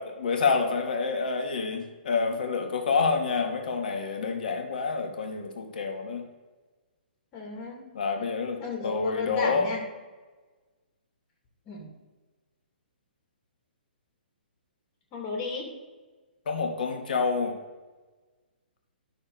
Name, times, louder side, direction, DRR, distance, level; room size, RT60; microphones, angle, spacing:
voice 1, 0.0-6.3 7.9-9.7 16.4-17.6, left 4 dB, 55° left, 4 dB, 1.5 m, -28 dB
voice 2, 7.3-7.8 8.6-9.8 11.7-11.9 15.1-15.7, left 4 dB, 25° left, 1 dB, 2.5 m, -34 dB
11.0 x 6.1 x 4.0 m, 1.3 s
figure-of-eight pair, 125°, 6 cm